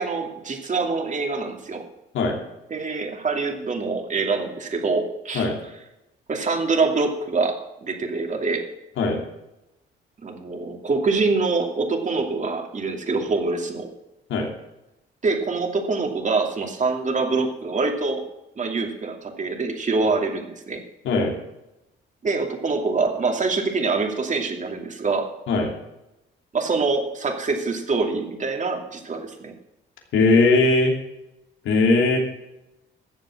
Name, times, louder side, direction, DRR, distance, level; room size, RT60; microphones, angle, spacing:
voice 1, 0.0-1.8 2.7-5.5 6.3-8.7 10.2-13.9 15.2-18.2 18.6-20.8 22.2-25.3 26.5-29.5, right 3 dB, 40° right, 4 dB, 2.6 m, -25 dB
voice 2, 30.1-30.9 31.6-32.2, left 3 dB, 75° left, 1 dB, 2.8 m, -19 dB
14.0 x 7.5 x 7.5 m, 0.91 s
cardioid pair, 90°, 20 cm